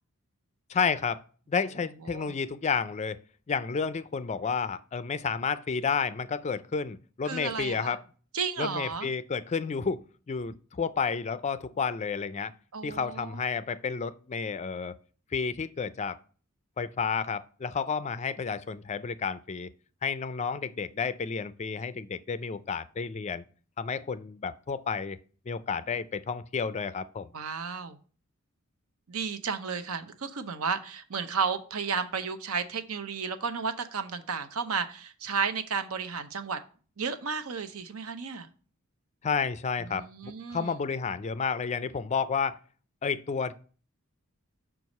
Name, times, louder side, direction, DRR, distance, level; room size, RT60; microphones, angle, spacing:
voice 1, 0.7-1.2 1.5-3.2 3.5-8.0 8.6-10.0 10.3-12.5 12.8-14.9 15.3-16.2 16.8-19.7 20.0-23.4 23.8-25.2 25.5-27.3 39.2-42.6 43.0-43.5, left 5 dB, 30° left, 0.4 m, -31 dB
voice 2, 7.3-8.0 8.3-9.1 12.7-13.4 27.3-28.0 29.1-36.6 37.0-38.5 39.8-40.7, right 5 dB, 80° right, 0.8 m, -33 dB
6.1 x 4.7 x 5.3 m
head